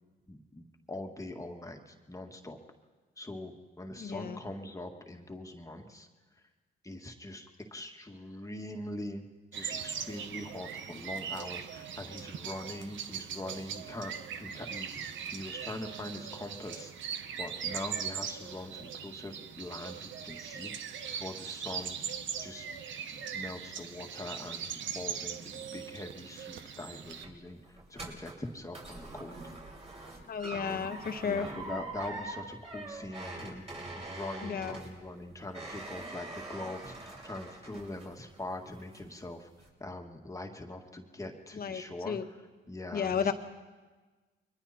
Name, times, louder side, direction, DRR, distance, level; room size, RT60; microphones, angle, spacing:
voice 1, 0.3-2.6 3.2-6.1 6.8-9.2 9.5-16.9 17.4-20.7 21.1-22.0 22.4-22.7 23.1-29.4 30.5-30.9 31.2-33.6 34.0-39.5 39.8-43.3, left 1 dB, 15° left, 3 dB, 2.0 m, -43 dB
voice 2, 4.0-4.4 30.3-31.5 34.4-34.8 41.6-42.2 42.9-43.3, left 6 dB, 50° left, 7 dB, 1.6 m, -33 dB
sound 1, 9.5-27.3, right 7 dB, 70° right, 1.3 m, -40 dB
sound 2, 27.2-38.3 38.7-39.2 39.6-39.7, right 2 dB, 30° right, 6.9 m, -44 dB
29.5 x 23.0 x 4.4 m, 1.3 s
cardioid pair, 90°, 20 cm